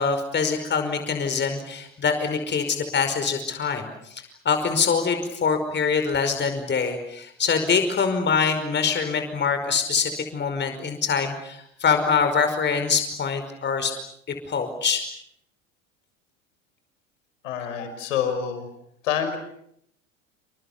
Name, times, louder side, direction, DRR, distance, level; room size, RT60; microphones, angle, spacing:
voice 1, 0.0-13.9 14.5-15.0, left 5 dB, 25° left, 7 dB, 5.3 m, -24 dB
voice 2, 17.4-18.7 19.0-19.4, left 8 dB, 70° left, 8 dB, 6.1 m, -27 dB
28.5 x 27.5 x 6.9 m, 0.73 s
hypercardioid pair, 80°, 39 cm